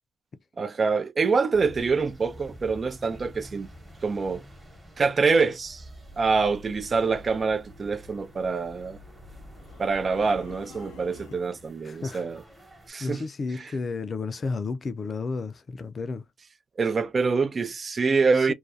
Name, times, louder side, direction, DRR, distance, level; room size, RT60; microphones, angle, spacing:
voice 1, 0.6-3.7 4.0-4.4 5.0-5.8 6.2-9.0 9.8-12.4 12.9-13.2 13.6-13.7 16.8-18.5, right 4 dB, 35° right, 0.3 m, -25 dB
sound 1, 1.5-12.9, equal, 20° right, 1.0 m, -47 dB
sound 2, 9.5-11.7, left 4 dB, 85° left, 0.6 m, -48 dB
voice 2, 11.8-12.2 13.0-16.2 18.3-18.5, left 4 dB, 40° left, 0.4 m, -32 dB
2.3 x 2.2 x 2.5 m
cardioid pair, 90°, 0 cm